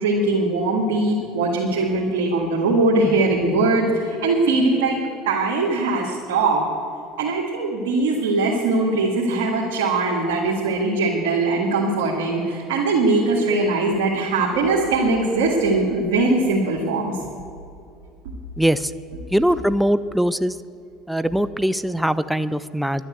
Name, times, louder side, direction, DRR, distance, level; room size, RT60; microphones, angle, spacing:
voice 1, 0.0-5.0 5.3-6.6 7.2-17.2, right 3 dB, 85° right, -3 dB, 1.9 m, -21 dB
voice 2, 18.6-18.9 19.3-20.6 21.1-23.1, equal, ahead, 14 dB, 0.5 m, -21 dB
11.5 x 10.0 x 8.0 m, 2.4 s
supercardioid pair, 85°, 0 cm